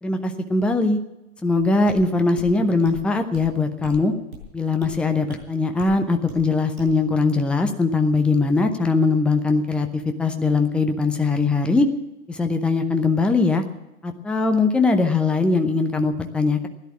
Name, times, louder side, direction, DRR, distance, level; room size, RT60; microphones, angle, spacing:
voice 1, 0.0-1.0 1.4-4.1 4.5-11.9 12.3-13.6 14.0-16.7, left 3 dB, ahead, 7 dB, 0.7 m, -21 dB
sound 1, 1.9-2.0 2.4-2.5 2.8-3.0 3.3-3.5 3.8-4.0 4.3-4.5 4.8-4.9 5.3-5.4 5.8-6.0 6.3-6.4 6.8-6.9, right 2 dB, 75° right, 6.6 m, -38 dB
16.5 x 11.0 x 7.3 m, 0.95 s
figure-of-eight pair, 110°, 43 cm